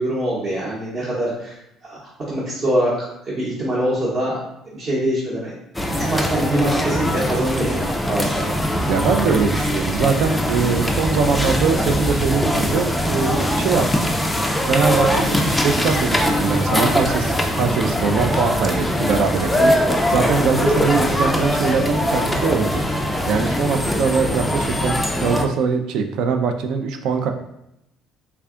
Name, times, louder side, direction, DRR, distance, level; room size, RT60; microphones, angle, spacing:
voice 1, 0.0-2.0 2.3-4.4 4.7-5.5 5.9-8.5, right 1 dB, 40° right, -8 dB, 0.9 m, -24 dB
sound 1, 5.7-25.5, equal, 5° left, 0.3 m, -21 dB
voice 2, 8.9-14.1 14.7-19.7 20.1-22.8 23.3-27.3, right 5 dB, 70° right, 5 dB, 0.4 m, -22 dB
3.4 x 2.2 x 3.6 m, 0.82 s
cardioid pair, 150°, 0 cm